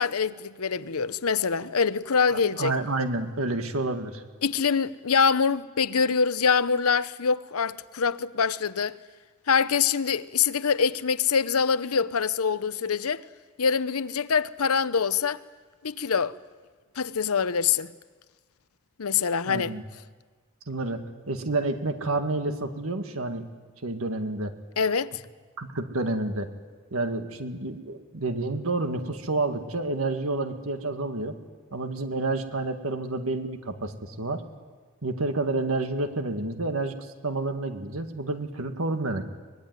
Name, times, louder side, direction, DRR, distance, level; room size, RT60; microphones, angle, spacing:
voice 1, 0.0-2.7 4.4-9.0 9.5-13.2 13.6-15.4 15.8-16.3 17.0-17.9 19.0-19.7 24.8-25.1, left 6 dB, 90° left, 0.8 m, -24 dB
voice 2, 2.3-4.2 19.5-19.8 20.7-23.5 23.8-24.5 25.6-26.5 26.9-31.4 31.7-34.4 35.0-37.0 37.2-39.3, right 2 dB, 80° right, 1.9 m, -29 dB
24.0 x 20.0 x 9.6 m
head